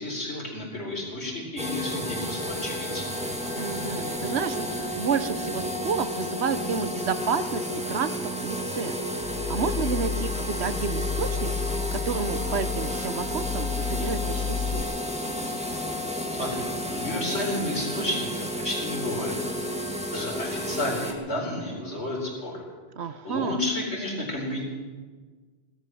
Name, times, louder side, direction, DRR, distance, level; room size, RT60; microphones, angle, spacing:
voice 1, 0.0-3.1 16.4-16.6 16.9-19.3 20.1-22.6 23.2-24.6, left 1 dB, 65° left, -2 dB, 4.6 m, -31 dB
sound 1, 1.6-21.1, left 1 dB, 5° right, 1.4 m, -32 dB
voice 2, 3.5-11.5 11.9-14.9 23.0-23.6, right 6 dB, 65° right, 12 dB, 1.1 m, -30 dB
sound 2, 9.2-14.8, left 6 dB, 45° left, 0.5 m, -31 dB
18.0 x 12.5 x 6.2 m, 1.4 s
omnidirectional pair, 1.2 m